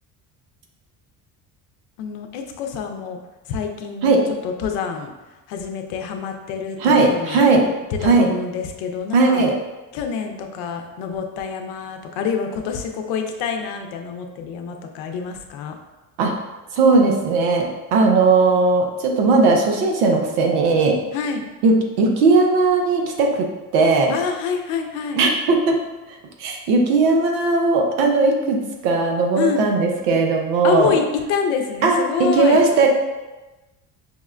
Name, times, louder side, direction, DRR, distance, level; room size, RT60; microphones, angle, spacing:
voice 1, 2.0-3.2 3.5-5.1 5.5-7.4 8.0-9.4 9.9-15.7 21.1-21.4 24.1-25.2 29.4-29.7 30.6-32.6, left 6 dB, 70° left, 4 dB, 0.6 m, -26 dB
voice 2, 6.8-7.7 8.0-8.3 9.1-9.5 16.2-16.3 16.7-21.0 21.6-24.1 25.2-25.8 26.1-30.9 31.8-32.9, right 3 dB, 80° right, 2 dB, 0.8 m, -18 dB
5.3 x 2.1 x 2.4 m, 1.1 s
supercardioid pair, 75°, 46 cm